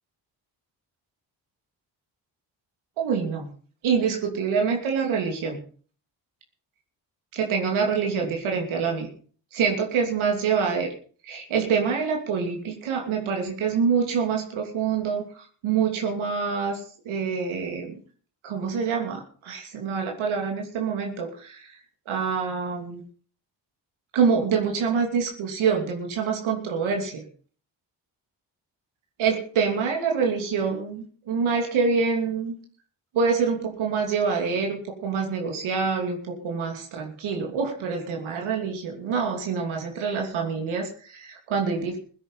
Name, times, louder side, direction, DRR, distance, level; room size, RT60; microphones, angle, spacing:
voice 1, 3.0-3.5 3.8-5.6 7.3-9.1 9.5-10.9 11.2-16.8 17.0-17.9 18.4-21.8 22.1-23.0 24.1-27.2 29.2-32.5 33.1-42.0, right 5 dB, 85° right, 2 dB, 3.0 m, -26 dB
16.5 x 9.6 x 5.6 m, 0.43 s
supercardioid pair, 55°, 47 cm